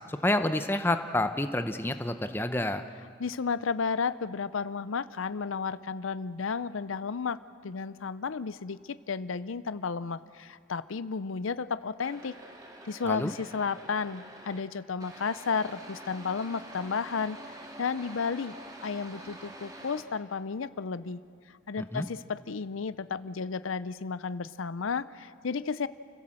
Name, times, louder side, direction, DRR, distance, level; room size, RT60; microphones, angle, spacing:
voice 1, 0.1-2.8 13.1-13.3 21.9-22.1, left 1 dB, 10° left, 8 dB, 0.7 m, -28 dB
voice 2, 3.2-7.4 7.6-12.3 12.9-18.5 18.8-21.2 21.5-25.9, left 5 dB, 85° left, 16 dB, 0.6 m, -33 dB
sound 1, 12.0-14.6 15.0-20.0, right 1 dB, 20° right, 2.0 m, -47 dB
29.5 x 16.5 x 7.6 m, 2.2 s
head